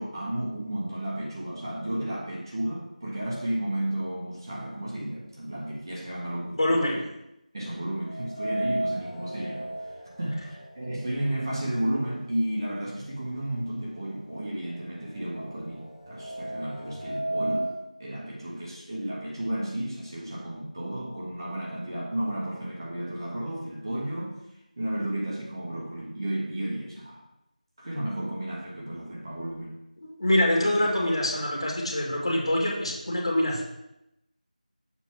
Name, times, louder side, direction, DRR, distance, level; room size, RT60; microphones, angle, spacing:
voice 1, 0.0-7.0 7.5-9.7 10.2-17.7 18.0-24.4 24.8-27.2 27.8-29.7, right 1 dB, 30° right, -5 dB, 1.6 m, -33 dB
voice 2, 6.5-7.0 30.0-33.6, left 1 dB, 40° left, -3 dB, 2.1 m, -25 dB
sound 1, 8.0-12.1 12.4-12.5 13.5-13.6 14.0-17.8, right 1 dB, 20° left, 1.0 m, -35 dB
7.4 x 4.1 x 5.8 m, 0.85 s
figure-of-eight pair, 175°, 4 cm